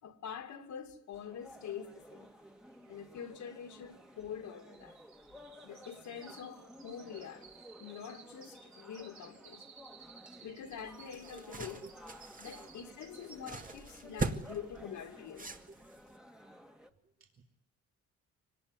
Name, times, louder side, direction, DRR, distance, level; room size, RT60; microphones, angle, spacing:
voice 1, 0.0-2.3 2.9-5.0 5.6-7.5 7.8-9.7 10.4-11.8 12.4-15.5, left 8 dB, 70° left, 2.6 m, -45 dB
sound 1, 1.1-16.9, equal, ahead, 2.0 m, -55 dB
sound 2, 2.2-2.3 2.5-13.9 14.3-14.7 15.1-15.2, right 6 dB, 70° right, 3.7 m, -58 dB
sound 3, 10.7-16.1, right 3 dB, 25° right, 2.1 m, -42 dB
voice 2, 17.0-17.4, right 3 dB, 45° right, 3.1 m, -54 dB
24.5 x 18.5 x 9.7 m
cardioid pair, 90°, 30 cm